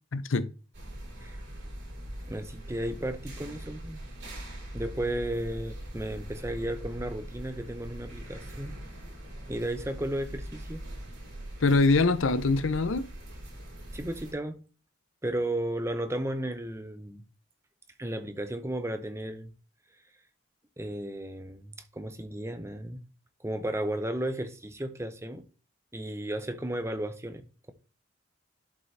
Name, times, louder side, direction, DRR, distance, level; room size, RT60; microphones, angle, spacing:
voice 1, 0.1-0.5 11.6-13.1, left 3 dB, 70° left, 0.6 m, -23 dB
sound 1, 0.7-14.3, right 1 dB, 55° right, 4.4 m, -42 dB
voice 2, 2.3-4.0 4.7-8.8 9.5-10.8 13.9-14.6 15.2-17.2 18.0-19.5 20.8-23.0 23.4-25.4 25.9-27.7, right 1 dB, 15° right, 0.7 m, -34 dB
11.5 x 5.3 x 3.3 m
head